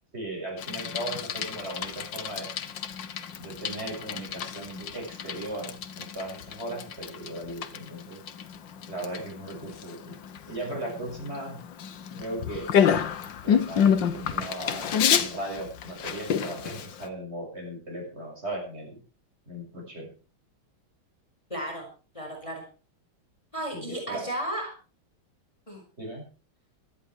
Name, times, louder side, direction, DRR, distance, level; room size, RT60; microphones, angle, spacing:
voice 1, 0.1-2.5 3.4-8.2 8.9-10.2 10.5-11.6 12.2-12.7 13.4-18.9 19.5-20.1 23.7-24.2 26.0-26.2, right 1 dB, 30° right, 0 dB, 7.3 m, -37 dB
Bicycle, 0.6-17.1, left 8 dB, 65° left, 1.8 m, -29 dB
voice 2, 21.5-21.9 22.1-22.6 23.5-24.7 25.7-25.8, right 1 dB, 15° left, 0 dB, 5.3 m, -34 dB
17.5 x 13.0 x 4.6 m, 0.36 s
omnidirectional pair, 2.2 m